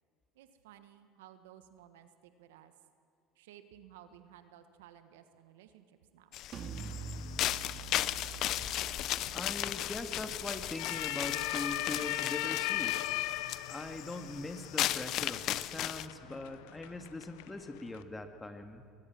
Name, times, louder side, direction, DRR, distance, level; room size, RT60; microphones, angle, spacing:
voice 1, 0.3-2.7 3.3-6.4, right 11 dB, 85° right, 10 dB, 1.3 m, -56 dB
sound 1, 6.3-16.1, left 14 dB, 60° left, 0.6 m, -36 dB
sound 2, 6.5-12.2, right 5 dB, 45° right, 2.1 m, -47 dB
sound 3, 6.8-18.0, left 15 dB, 75° left, 0.9 m, -40 dB
voice 2, 9.3-12.9 13.7-18.8, left 2 dB, 15° left, 7 dB, 2.0 m, -41 dB
22.0 x 19.5 x 6.1 m, 2.6 s
supercardioid pair, 85°, 0 cm